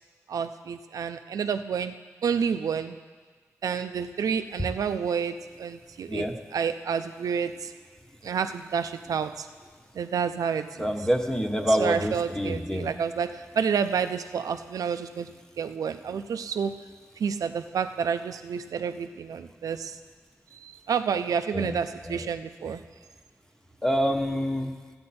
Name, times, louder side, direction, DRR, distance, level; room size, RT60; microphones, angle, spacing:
voice 1, 0.3-1.9 2.2-3.0 3.6-6.3 6.5-7.7 8.2-9.5 9.9-11.0 11.8-16.7 17.2-20.0 20.5-22.8, right 7 dB, 80° right, 10 dB, 0.5 m, -29 dB
voice 2, 10.8-12.9 21.5-21.8 22.0-22.2 23.8-24.8, equal, 10° left, 4 dB, 1.3 m, -26 dB
14.0 x 8.7 x 4.3 m, 1.5 s
cardioid pair, 55°, 6 cm